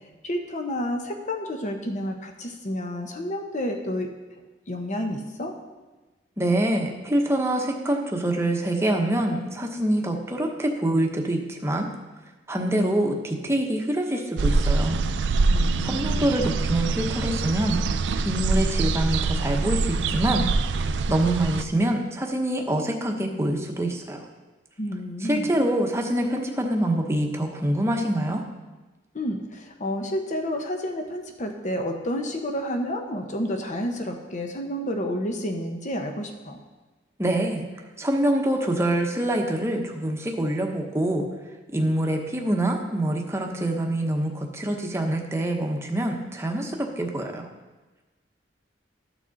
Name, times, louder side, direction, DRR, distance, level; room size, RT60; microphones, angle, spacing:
voice 1, 0.2-4.1 4.7-5.6 15.5-16.3 24.8-25.5 29.1-36.6, equal, 45° left, 4 dB, 1.0 m, -30 dB
voice 2, 6.4-11.9 12.5-15.0 15.8-17.8 18.2-20.5 21.1-24.2 25.2-28.4 37.2-37.6 38.0-41.2 41.7-47.5, right 1 dB, 15° right, 2 dB, 1.0 m, -25 dB
sound 1, 14.4-21.6, right 3 dB, 70° right, 0.4 m, -24 dB
12.5 x 6.0 x 4.0 m, 1.2 s
head